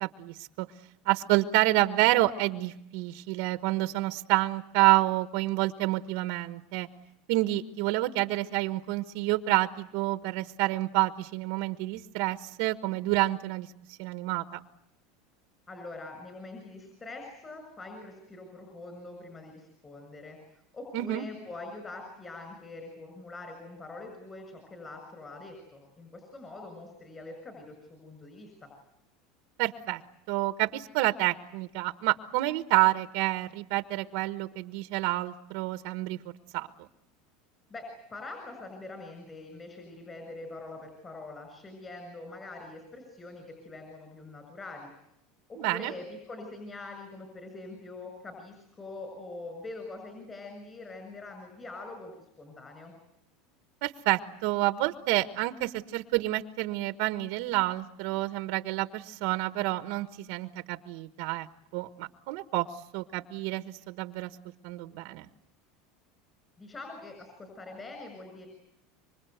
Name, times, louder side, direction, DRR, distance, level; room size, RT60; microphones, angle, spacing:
voice 1, 0.0-0.7 1.0-6.9 7.3-13.7 14.0-14.4 20.9-21.2 29.6-30.0 30.3-36.2 36.5-36.7 45.6-45.9 53.8-61.5 61.7-62.7 62.9-64.3 64.6-65.3, right 18 dB, 65° right, 10 dB, 1.2 m, -28 dB
voice 2, 15.7-20.4 20.7-28.7 37.7-44.9 45.5-52.9 66.6-68.5, left 2 dB, 20° left, 5 dB, 6.4 m, -44 dB
26.0 x 25.0 x 8.1 m, 0.78 s
supercardioid pair, 145°, 0 cm